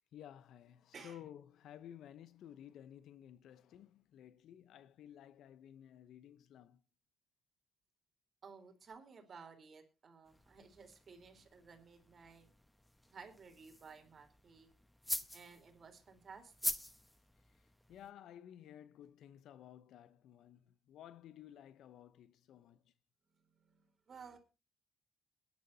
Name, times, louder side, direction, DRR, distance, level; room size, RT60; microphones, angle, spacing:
voice 1, 0.1-6.8 15.1-15.2 17.9-22.9, left 10 dB, 75° left, 0.7 m, -55 dB
voice 2, 0.9-1.2 8.4-12.5 13.1-14.7 15.3-16.5 23.6-24.4, right 5 dB, 45° right, 3.7 m, -56 dB
sound 1, 10.3-18.1, left 1 dB, 5° left, 1.2 m, -46 dB
22.5 x 10.5 x 2.7 m
cardioid pair, 90°, 0 cm